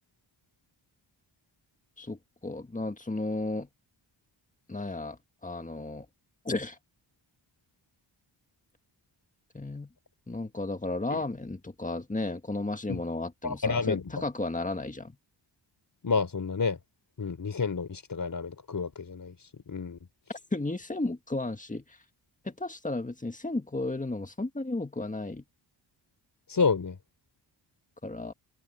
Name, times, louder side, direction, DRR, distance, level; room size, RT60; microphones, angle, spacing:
voice 1, 2.0-3.7 4.7-6.1 6.5-6.8 9.5-9.9 10.3-15.2 20.5-22.0 22.4-25.4 28.0-28.3, left 2 dB, 15° left, 1.8 m, -34 dB
voice 2, 13.4-14.2 16.0-16.8 17.2-20.0 26.5-27.0, left 5 dB, 45° left, 3.9 m, -30 dB
wide cardioid pair, 95°, 46 cm